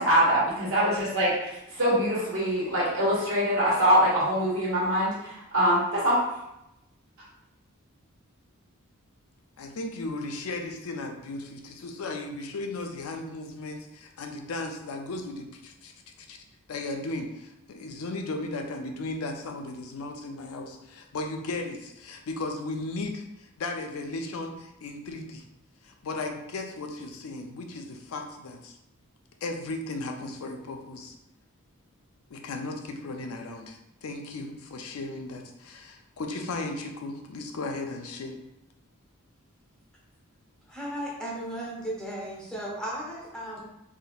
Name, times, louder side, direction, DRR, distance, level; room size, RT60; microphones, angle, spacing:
voice 1, 0.0-6.2, equal, 65° right, -6 dB, 1.4 m, -24 dB
voice 2, 9.6-15.9 16.3-16.4 16.7-25.4 25.8-28.8 29.4-31.1 32.3-38.4, left 2 dB, 75° left, 4 dB, 0.4 m, -36 dB
voice 3, 40.7-43.6, right 1 dB, 5° left, -5 dB, 0.8 m, -35 dB
3.5 x 2.7 x 2.3 m, 0.86 s
head